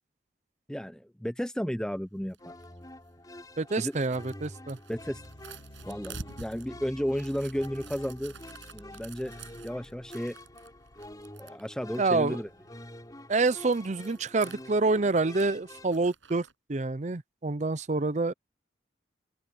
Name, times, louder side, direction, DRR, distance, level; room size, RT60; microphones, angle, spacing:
voice 1, 0.7-2.5 3.8-3.9 4.9-5.2 5.9-8.3 8.7-9.3 9.6-10.4 11.4-12.5, equal, 5° left, 0.6 m, -33 dB
sound 1, 1.9-16.5, right 4 dB, 90° right, 6.8 m, -50 dB
sound 2, 2.4-16.1, left 1 dB, 20° left, 5.0 m, -48 dB
voice 2, 3.6-4.8 12.0-12.4 13.3-18.3, right 3 dB, 40° right, 0.6 m, -27 dB
sound 3, 4.9-11.4, left 1 dB, 65° left, 1.9 m, -52 dB
open air
head